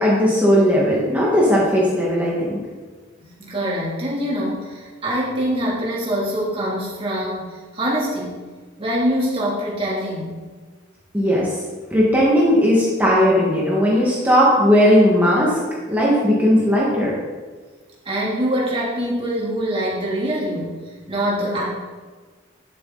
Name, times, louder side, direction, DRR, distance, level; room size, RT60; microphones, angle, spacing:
voice 1, 0.0-2.6 11.1-11.5 11.9-15.6 15.9-17.1, equal, 10° right, -6 dB, 1.7 m, -17 dB
voice 2, 3.2-8.4 8.8-10.4 16.5-16.6 18.0-20.7 21.1-21.7, equal, 30° right, -6 dB, 2.8 m, -24 dB
11.0 x 8.1 x 4.0 m, 1.4 s
head